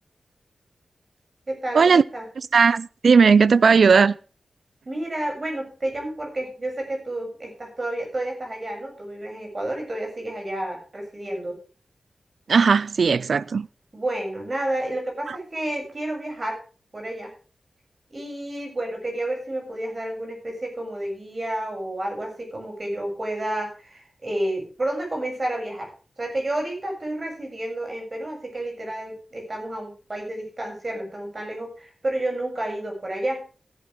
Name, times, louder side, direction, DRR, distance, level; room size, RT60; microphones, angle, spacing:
voice 1, 1.5-2.3 4.9-11.6 13.9-16.6 16.9-17.3 18.1-25.9 26.2-33.4, right 1 dB, 35° right, 7.1 m, -30 dB
voice 2, 2.5-4.2 12.5-13.7 15.3-15.4, right 5 dB, 75° right, 0.5 m, -17 dB
16.5 x 11.5 x 3.5 m
wide cardioid pair, 120°, 0 cm